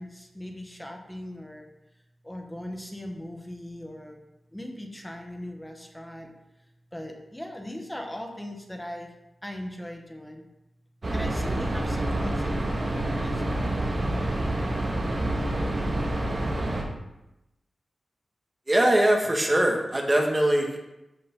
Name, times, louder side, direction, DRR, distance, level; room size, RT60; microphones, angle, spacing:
voice 1, 0.0-1.7 2.2-4.2 4.5-6.3 6.9-9.1 9.4-10.5 11.1-13.8 14.3-14.4, left 1 dB, 10° left, 2 dB, 1.8 m, -39 dB
sound 1, 11.0-16.8, right 1 dB, 40° right, 2.1 m, -27 dB
voice 2, 18.7-20.8, right 1 dB, 25° right, 1 dB, 2.1 m, -22 dB
14.5 x 5.6 x 3.9 m, 0.92 s
cardioid pair, 60°, 0 cm